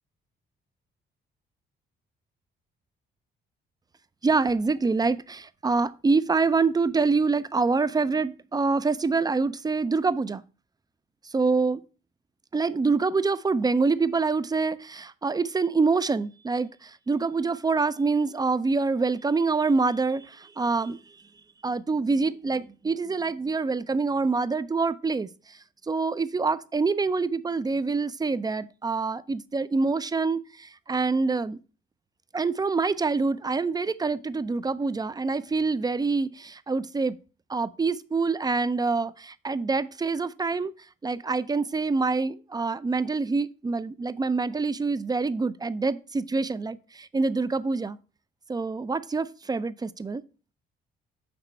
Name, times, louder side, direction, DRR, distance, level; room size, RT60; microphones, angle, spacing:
voice 1, 4.2-10.4 11.2-11.8 12.5-21.0 21.6-25.6 25.9-31.6 32.3-37.2 37.5-40.7 41.0-48.0 48.5-50.2, right 4 dB, 20° right, 0.5 m, -26 dB
6.5 x 6.0 x 4.4 m
cardioid pair, 90°, 20 cm